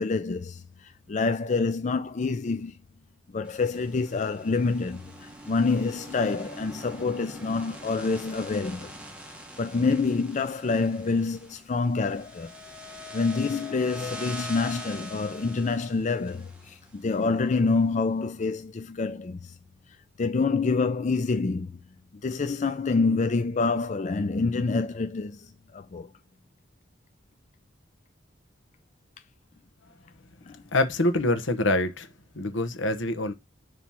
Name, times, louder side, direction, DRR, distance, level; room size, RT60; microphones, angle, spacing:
voice 1, 0.0-2.8 3.3-8.9 9.6-12.5 13.1-19.6 20.2-21.7 22.2-26.1 30.5-30.6, left 4 dB, 40° left, 0.4 m, -27 dB
sound 1, 3.4-17.6, left 1 dB, 5° right, 1.4 m, -43 dB
voice 2, 30.7-32.1 32.3-33.3, left 1 dB, 75° left, 1.1 m, -25 dB
7.2 x 3.1 x 6.0 m
head